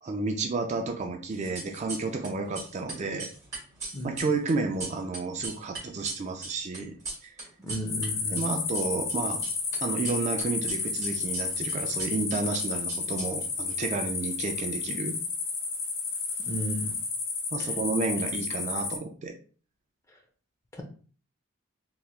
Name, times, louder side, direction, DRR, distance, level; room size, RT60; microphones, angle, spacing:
voice 1, 0.0-3.3 4.0-6.9 7.2-7.3 8.3-9.4 9.8-15.2 17.5-19.3, right 3 dB, 35° right, 4 dB, 0.3 m, -31 dB
sound 1, 1.3-2.3 2.5-8.1 8.3-9.8 10.0-13.7, right 3 dB, 15° right, 1.6 m, -39 dB
voice 2, 7.6-8.5 16.5-17.0 17.6-17.7 20.7-20.8, equal, 15° left, 2 dB, 0.5 m, -34 dB
sound 2, 7.9-19.0, left 4 dB, 70° left, 0.7 m, -32 dB
3.3 x 2.9 x 2.3 m, 0.42 s
head